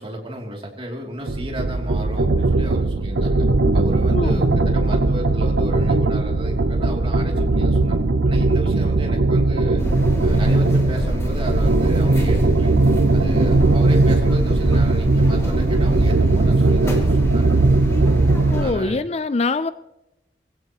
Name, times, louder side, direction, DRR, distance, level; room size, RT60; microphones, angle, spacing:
voice 1, 0.0-3.4 3.7-8.0 8.3-9.8 10.2-12.8 13.1-17.6 18.5-19.0, equal, 30° right, 0 dB, 2.9 m, -33 dB
sound 1, 1.3-18.7, right 2 dB, 80° right, 0.7 m, -18 dB
voice 2, 4.1-4.5 18.5-19.7, left 3 dB, 35° left, 13 dB, 0.4 m, -23 dB
sound 2, 9.8-18.7, equal, 15° left, 2.5 m, -26 dB
22.5 x 16.0 x 3.0 m, 0.90 s
head